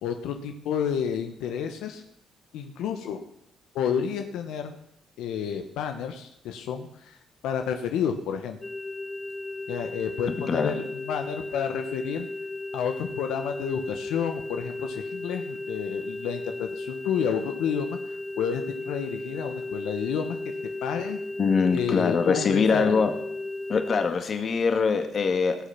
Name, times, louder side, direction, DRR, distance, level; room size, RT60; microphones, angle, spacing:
voice 1, 0.0-2.0 2.5-3.2 3.7-4.7 5.2-7.2 7.4-8.6 9.7-12.3 12.7-20.5 20.8-21.2 21.7-23.0, left 8 dB, 90° left, 6 dB, 1.1 m, -30 dB
sound 1, 8.6-24.1, left 2 dB, 15° left, 0.6 m, -35 dB
voice 2, 21.4-23.1 23.7-25.6, left 5 dB, 50° left, 7 dB, 1.8 m, -23 dB
17.5 x 7.0 x 5.8 m, 0.77 s
cardioid pair, 90°, 0 cm